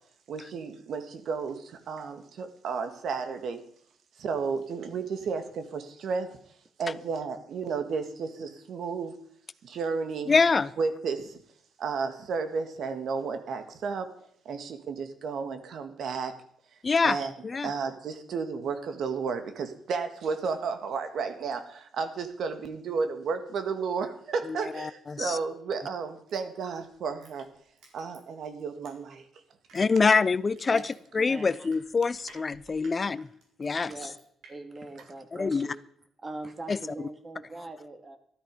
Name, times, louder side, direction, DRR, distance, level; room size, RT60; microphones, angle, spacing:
voice 1, 0.3-3.6 4.2-6.4 6.8-9.1 9.6-10.4 10.8-11.4 11.8-14.1 14.4-16.3 17.0-17.3 17.6-27.5 27.9-29.3, right 5 dB, 65° right, 8 dB, 1.8 m, -32 dB
voice 2, 10.3-10.7 16.8-17.2 17.4-17.7 24.5-25.4 29.8-33.3 33.6-33.9 35.4-35.7 36.7-36.8, left 4 dB, 30° left, 17 dB, 0.6 m, -25 dB
Crushing, 26.3-29.3 29.7-34.5 34.9-35.0, right 3 dB, 80° right, 4.8 m, -57 dB
voice 3, 31.1-31.5 33.6-34.2 34.5-35.8 36.2-38.2, right 2 dB, 30° right, 6 dB, 2.2 m, -41 dB
13.0 x 13.0 x 5.3 m, 0.65 s
cardioid pair, 90°, 0 cm